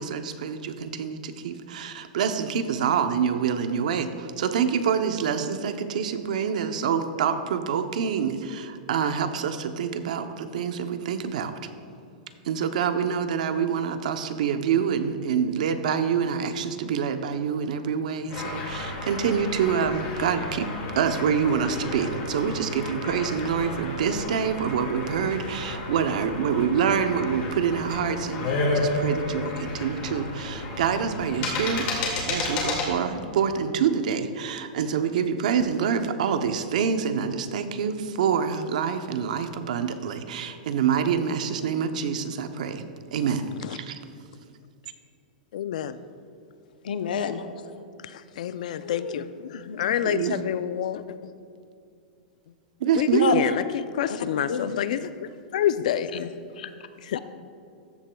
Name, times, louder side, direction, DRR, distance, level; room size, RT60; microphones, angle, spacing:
voice 1, 0.0-11.6 12.4-20.7 21.0-31.9 32.3-42.8 43.1-44.0 50.0-50.5 52.8-53.4, right 7 dB, 60° right, 9 dB, 0.7 m, -26 dB
sound 1, 18.3-32.9, left 2 dB, 30° left, 2.0 m, -31 dB
voice 2, 45.5-46.0 48.4-49.3 49.8-51.0 53.0-53.6 54.0-56.1 57.1-57.2, left 10 dB, 55° left, 13 dB, 0.4 m, -27 dB
voice 3, 46.8-47.4 48.8-49.8 53.2-53.3 54.1-54.2 54.5-54.8 56.1-56.3 56.6-56.7 57.1-57.2, left 7 dB, 85° left, 9 dB, 0.7 m, -30 dB
14.5 x 11.0 x 2.3 m, 2.4 s
supercardioid pair, 180°, 5 cm